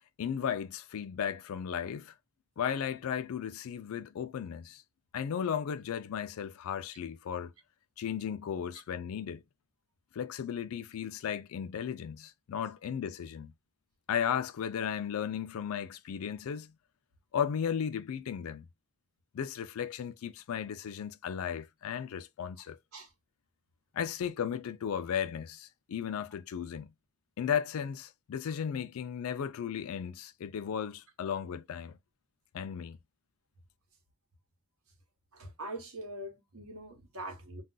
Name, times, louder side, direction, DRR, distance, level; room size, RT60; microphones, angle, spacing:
voice 1, 0.2-2.1 2.6-4.8 5.1-7.5 8.0-9.4 10.1-13.5 14.1-16.7 17.3-18.7 19.3-22.8 23.9-26.9 27.4-32.0 32.5-33.0, left 8 dB, 75° left, 0.3 m, -35 dB
voice 2, 35.3-37.6, right 1 dB, 75° right, 1.1 m, -43 dB
2.4 x 2.2 x 3.7 m
head